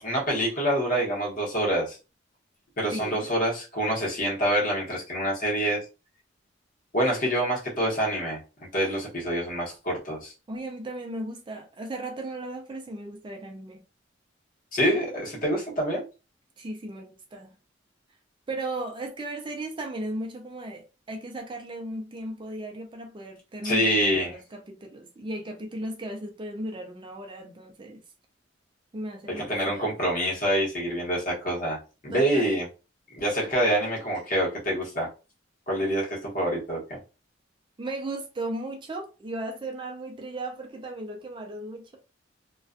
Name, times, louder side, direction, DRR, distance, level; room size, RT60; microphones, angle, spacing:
voice 1, 0.0-2.0 2.8-5.8 6.9-8.4 8.7-10.3 14.7-16.0 23.6-24.4 29.3-32.7 33.1-35.1 35.7-36.8, equal, 45° left, 1.0 m, -26 dB
voice 2, 2.9-3.3 10.5-13.8 16.6-17.6 18.5-28.0 28.9-29.9 32.1-32.6 37.8-42.0, right 1 dB, 25° right, 0.4 m, -36 dB
2.4 x 2.2 x 2.4 m
head